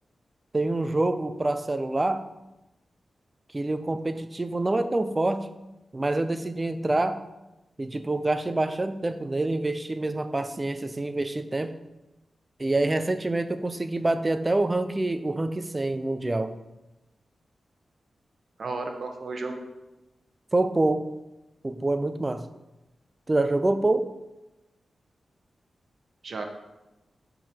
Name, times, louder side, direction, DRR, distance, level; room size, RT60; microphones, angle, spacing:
voice 1, 0.5-2.3 3.5-5.5 5.9-7.2 7.8-11.7 12.6-16.6 20.5-21.1 21.6-22.5 23.3-24.1, right 2 dB, 25° right, 10 dB, 0.6 m, -26 dB
voice 2, 18.6-19.6 26.2-26.4, right 3 dB, 65° right, 4 dB, 1.1 m, -33 dB
7.5 x 3.9 x 6.6 m, 1.0 s
cardioid pair, 75°, 0 cm